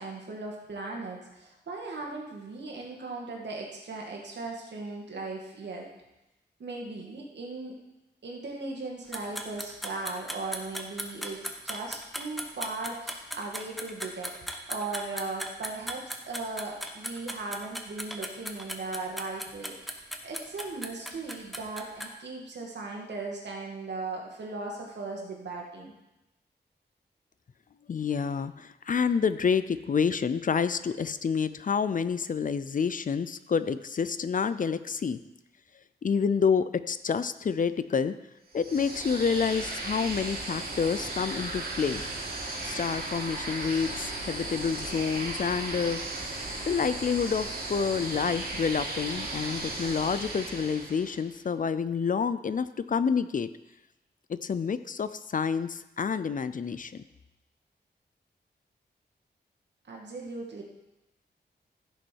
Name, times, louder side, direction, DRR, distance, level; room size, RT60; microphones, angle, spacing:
voice 1, 0.0-5.9 6.6-7.7 8.2-14.3 14.7-25.9 59.9-60.6, right 3 dB, 80° right, -1 dB, 2.2 m, -38 dB
sound 1, 9.1-22.1, equal, ahead, 1.1 m, -37 dB
voice 2, 27.9-35.2 36.0-38.1 38.5-42.0 42.6-46.0 46.7-53.5 54.3-57.0, left 6 dB, 50° left, 13 dB, 0.5 m, -28 dB
sound 2, 38.5-51.3, right 2 dB, 60° right, 2.5 m, -36 dB
15.0 x 6.2 x 4.7 m, 0.96 s
wide cardioid pair, 110°, 18 cm